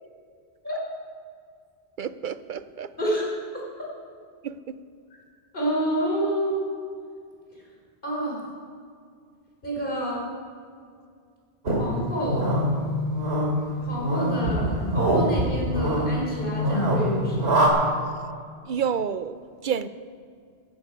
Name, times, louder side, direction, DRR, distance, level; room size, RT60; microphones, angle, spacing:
voice 1, 2.0-2.9 4.4-4.8 18.7-19.4 19.6-19.9, right 7 dB, 60° right, 0.6 m, -29 dB
voice 2, 5.5-6.7 8.0-8.5 9.6-10.3 11.8-12.5 13.9-17.5, equal, 55° left, 3.9 m, -28 dB
sound 1, 11.6-17.7, equal, 80° right, 2.8 m, -24 dB
15.0 x 12.0 x 5.2 m
omnidirectional pair, 1.1 m